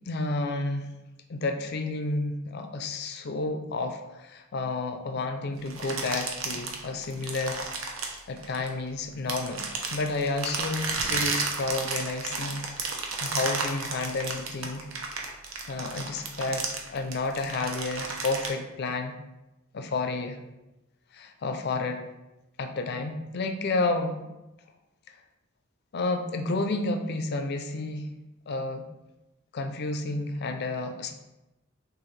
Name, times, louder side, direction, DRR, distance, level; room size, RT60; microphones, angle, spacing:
voice 1, 0.1-0.9 1.3-7.6 8.3-12.9 13.2-14.9 15.7-19.2 19.7-20.4 21.1-22.0 22.6-24.3 25.9-28.2 28.5-28.8 29.5-31.1, left 3 dB, 50° left, 6 dB, 0.5 m, -31 dB
sound 1, 5.7-8.9 9.3-18.5, right 4 dB, 70° right, 0.7 m, -32 dB
6.3 x 2.5 x 3.2 m, 0.99 s
head